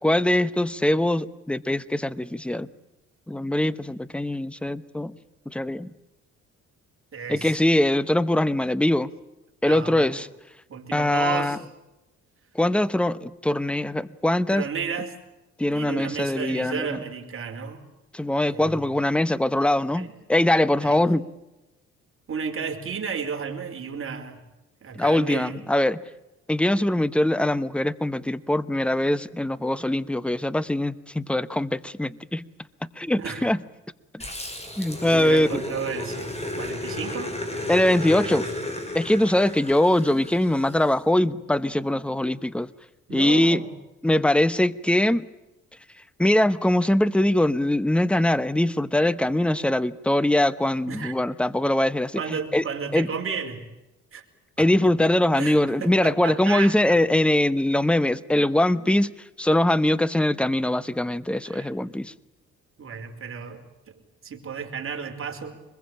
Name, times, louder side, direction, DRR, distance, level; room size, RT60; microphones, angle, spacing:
voice 1, 0.0-2.7 3.3-5.1 5.5-5.9 7.3-9.1 9.6-10.3 10.9-11.6 12.5-14.7 15.6-16.9 18.1-21.2 24.9-26.0 26.5-32.4 33.0-33.6 34.8-35.6 37.7-38.5 38.9-42.7 43.1-43.6 44.0-45.3 46.2-52.2 52.5-52.6 52.9-53.1 54.6-59.1 59.4-62.1, left 1 dB, 5° left, 17 dB, 1.0 m, -22 dB
voice 2, 7.1-7.6 9.7-10.2 10.7-11.6 14.5-15.1 15.7-17.8 18.5-18.8 19.9-20.1 20.8-21.0 22.3-24.4 24.8-25.6 33.2-33.5 35.1-36.3 36.6-37.3 37.7-38.4 43.1-43.7 50.9-51.1 52.2-53.6 54.1-54.2 54.6-54.9 55.4-57.0 61.4-61.7 62.8-65.6, right 6 dB, 45° right, 3 dB, 4.5 m, -33 dB
Growling, 34.2-40.9, left 1 dB, 20° left, 5.8 m, -33 dB
25.5 x 21.5 x 8.8 m, 0.98 s
cardioid pair, 90°, 30 cm